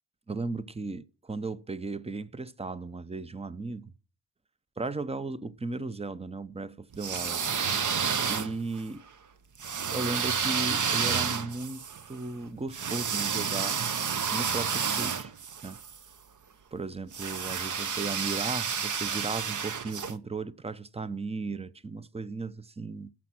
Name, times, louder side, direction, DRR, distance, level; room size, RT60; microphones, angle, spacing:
voice 1, 0.3-3.9 4.8-7.5 8.3-9.0 9.9-13.8 14.3-15.3 15.6-15.8 16.7-23.1, right 3 dB, 15° right, 0.7 m, -36 dB
sound 1, 6.9-8.8 9.6-16.0 17.1-20.1, right 6 dB, 40° right, 0.9 m, -30 dB
13.5 x 6.0 x 6.0 m
supercardioid pair, 65°, 48 cm